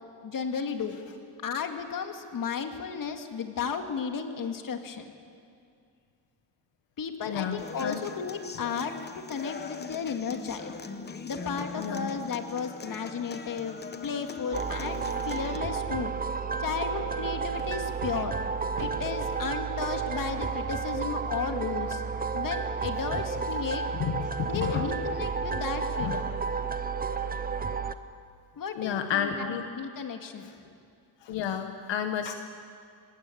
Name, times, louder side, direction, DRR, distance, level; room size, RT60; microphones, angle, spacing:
voice 1, 0.2-1.0 1.4-5.1 7.0-8.9 9.3-10.7 11.2-16.1 16.6-18.4 18.8-22.0 22.3-23.8 24.4-26.3 28.6-30.5, left 6 dB, 45° left, 5 dB, 2.1 m, -34 dB
voice 2, 7.3-8.0 11.7-12.1 23.1-23.2 24.0-24.9 26.0-26.2 28.7-29.7 31.2-32.3, left 8 dB, 70° left, 6 dB, 1.4 m, -31 dB
Human voice / Acoustic guitar, 7.6-15.6, left 4 dB, 20° left, 1.0 m, -41 dB
sound 1, 14.5-27.9, right 5 dB, 20° right, 0.7 m, -32 dB
sound 2, 16.9-22.9, right 4 dB, 45° right, 3.2 m, -48 dB
26.0 x 19.5 x 8.6 m, 2.4 s
cardioid pair, 150°, 45 cm